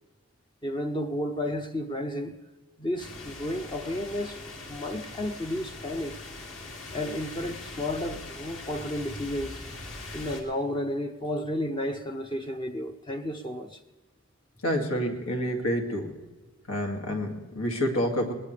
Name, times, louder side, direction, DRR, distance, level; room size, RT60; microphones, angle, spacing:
voice 1, 0.6-2.3 2.8-4.4 4.7-6.2 6.9-9.6 10.1-13.8, left 1 dB, 20° left, 0.7 m, -32 dB
sound 1, 3.0-10.4, left 2 dB, 55° left, 3.0 m, -41 dB
voice 2, 14.6-16.1 16.7-18.3, equal, 75° left, 2.5 m, -28 dB
20.0 x 19.5 x 3.4 m
head